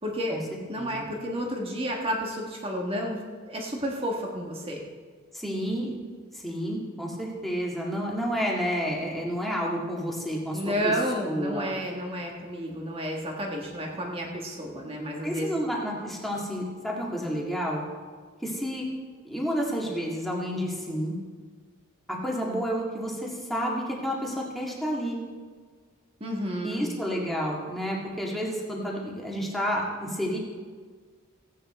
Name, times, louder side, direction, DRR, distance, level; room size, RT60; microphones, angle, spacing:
voice 1, 0.0-4.8 10.5-15.6 26.2-26.9, equal, 25° right, 0 dB, 1.6 m, -31 dB
voice 2, 5.3-6.0 6.3-10.9 11.2-11.7 15.2-17.8 18.4-18.9 19.2-21.1 22.1-25.2 26.6-30.4, equal, ahead, -3 dB, 2.1 m, -30 dB
16.0 x 9.3 x 4.4 m, 1.5 s
head